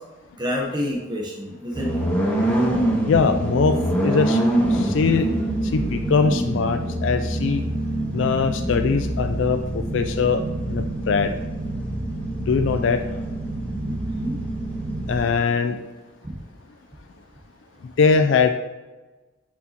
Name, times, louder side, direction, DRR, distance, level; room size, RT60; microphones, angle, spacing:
voice 1, 0.4-1.9 13.8-14.3, left 1 dB, 25° right, -2 dB, 0.9 m, -28 dB
sound 1, 1.7-15.2, right 1 dB, 5° left, 1.2 m, -25 dB
voice 2, 3.1-3.7 4.0-4.4 4.7-5.3 5.7-7.6 8.1-9.6 9.9-10.4 10.7-11.3 12.5-13.0 15.1-15.8 18.0-18.5, left 5 dB, 70° left, 7 dB, 0.4 m, -21 dB
6.9 x 4.8 x 2.9 m, 1.2 s
head